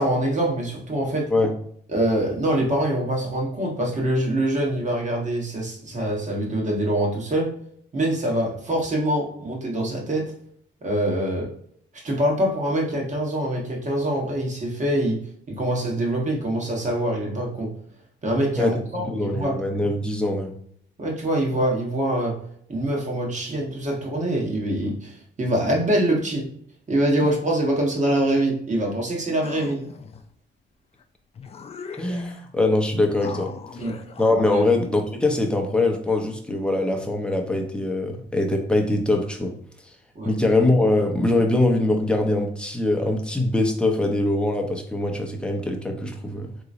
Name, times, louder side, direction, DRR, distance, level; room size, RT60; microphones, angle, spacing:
voice 1, 0.0-1.3 1.9-7.5 7.9-10.3 10.8-11.5 11.9-17.7 18.2-19.6 21.0-22.4 22.7-26.5 26.9-29.8 33.8-33.9 34.3-34.6 40.1-40.3, right 1 dB, 35° right, -1 dB, 1.3 m, -24 dB
voice 2, 19.1-20.5 32.0-33.5 34.2-39.6 40.2-46.5, left 2 dB, 5° left, 2 dB, 0.7 m, -22 dB
sound 1, 29.4-30.3 31.0-31.1 31.3-32.5 33.2-34.3, left 5 dB, 30° left, 0.4 m, -39 dB
3.7 x 3.0 x 2.6 m, 0.64 s
cardioid pair, 90°, 20 cm